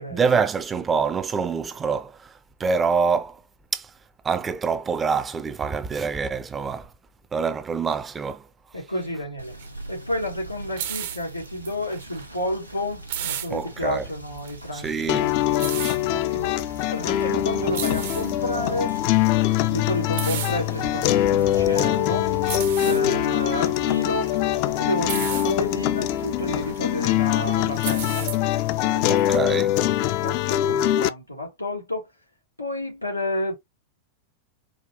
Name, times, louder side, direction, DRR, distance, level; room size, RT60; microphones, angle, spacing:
voice 1, 0.1-2.3 2.6-3.4 3.7-3.9 4.2-6.9 7.3-8.5 13.5-14.0 14.7-15.3 29.1-29.8, right 5 dB, 20° right, 0.5 m, -25 dB
voice 2, 8.7-9.5 9.9-15.3 16.1-16.6 16.9-19.0 19.7-22.3 22.8-24.4 24.7-28.3 28.8-29.4 29.8-32.1 32.6-33.6, left 1 dB, 85° left, 2.2 m, -30 dB
Rain / Motor vehicle (road), 9.4-29.0, right 1 dB, 90° right, 1.0 m, -42 dB
sound 1, 9.5-29.4, right 10 dB, 55° right, 0.7 m, -36 dB
sound 2, 15.1-31.1, left 13 dB, 45° left, 0.4 m, -23 dB
4.9 x 2.3 x 2.7 m
figure-of-eight pair, 90°, 0 cm